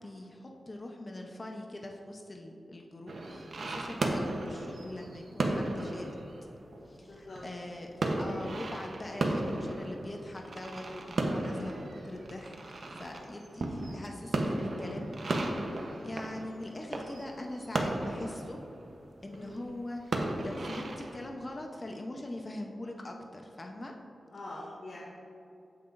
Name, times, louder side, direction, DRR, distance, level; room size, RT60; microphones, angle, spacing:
voice 1, 0.0-6.1 6.9-12.5 12.9-18.6 19.2-23.9, left 1 dB, 35° left, 2 dB, 0.8 m, -42 dB
sound 1, 3.1-21.2, right 2 dB, 65° right, 0.9 m, -35 dB
voice 2, 3.3-3.7 7.0-7.4 13.2-13.4 16.0-16.3 19.3-19.5 24.3-25.0, left 2 dB, 60° left, -7 dB, 2.0 m, -46 dB
16.0 x 5.7 x 2.6 m, 2.9 s
wide cardioid pair, 85°, 0 cm